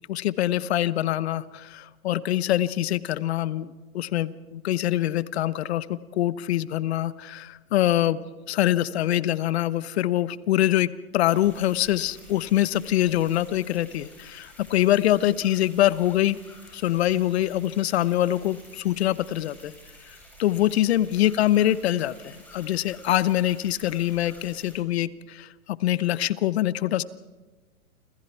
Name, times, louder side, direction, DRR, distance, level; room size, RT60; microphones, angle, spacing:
voice 1, 0.1-8.2 8.5-16.4 16.7-19.7 20.4-27.0, left 13 dB, 45° left, 17 dB, 1.0 m, -24 dB
sound 1, 11.3-24.8, left 1 dB, 5° left, 7.7 m, -50 dB
29.0 x 26.5 x 4.6 m, 1.3 s
hypercardioid pair, 135°, 43 cm